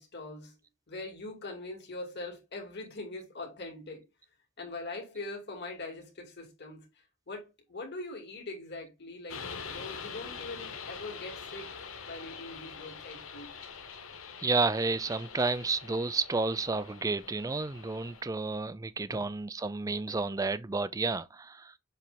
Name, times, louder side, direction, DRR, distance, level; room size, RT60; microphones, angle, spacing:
voice 1, 0.0-4.0 4.6-6.9 7.3-13.6 19.1-19.3, left 2 dB, 50° left, 2.6 m, -42 dB
sound 1, 9.3-18.2, left 6 dB, 70° left, 1.1 m, -44 dB
voice 2, 14.4-21.8, right 3 dB, 15° right, 0.3 m, -31 dB
7.3 x 3.3 x 4.1 m
head